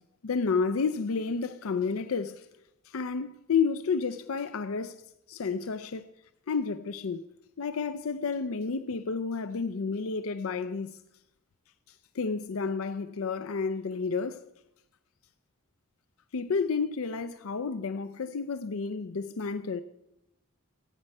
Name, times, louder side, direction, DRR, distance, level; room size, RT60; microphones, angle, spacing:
voice 1, 0.2-2.4 2.9-5.0 5.3-6.1 6.5-7.2 7.6-11.0 12.2-14.5 16.3-19.8, left 5 dB, 75° left, 0.5 m, -30 dB
15.0 x 9.2 x 5.4 m
head